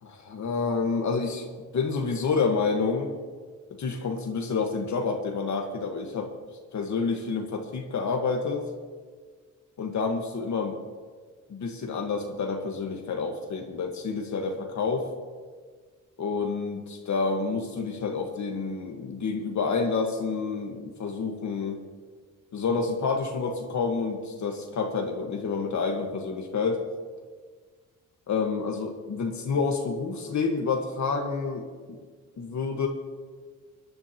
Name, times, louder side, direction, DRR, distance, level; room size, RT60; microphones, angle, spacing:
voice 1, 0.0-1.5 1.7-3.1 3.8-6.3 6.7-8.7 9.8-10.8 11.5-15.1 16.2-21.8 22.5-26.8 28.3-32.0 32.4-32.9, left 4 dB, 60° left, 2 dB, 1.5 m, -28 dB
29.5 x 11.0 x 2.9 m, 1.5 s
wide cardioid pair, 165°, 33 cm